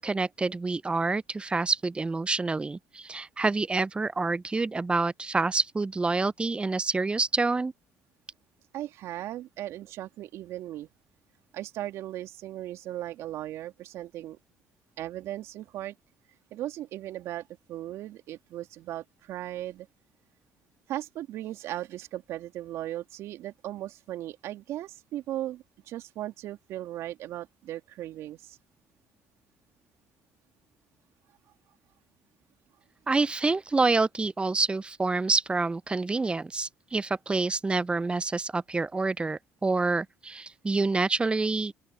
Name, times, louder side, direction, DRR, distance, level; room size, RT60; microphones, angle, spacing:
voice 1, 0.0-7.7 33.1-41.7, right 3 dB, 20° right, 0.6 m, -27 dB
voice 2, 8.7-10.9 11.5-14.4 15.0-15.9 16.5-19.9 20.9-28.6, right 13 dB, 70° right, 3.0 m, -37 dB
open air
hypercardioid pair, 55°, 5 cm